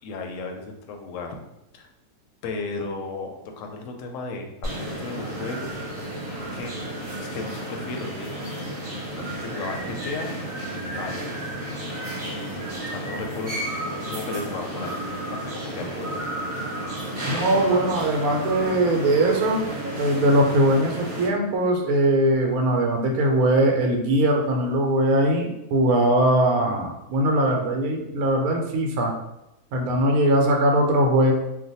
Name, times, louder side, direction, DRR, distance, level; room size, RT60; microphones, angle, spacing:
voice 1, 0.0-1.4 1.7-1.9 2.4-5.8 6.5-6.8 7.2-8.5 8.8-10.5 10.7-11.3 12.3-16.2, left 3 dB, 65° left, 3 dB, 0.8 m, -35 dB
sound 1, 4.6-21.3, right 1 dB, 35° right, 0.9 m, -32 dB
voice 2, 17.3-19.7 20.0-29.2 29.7-31.3, right 1 dB, 75° right, 1 dB, 1.1 m, -21 dB
2.5 x 2.2 x 4.0 m, 0.90 s
omnidirectional pair, 1.6 m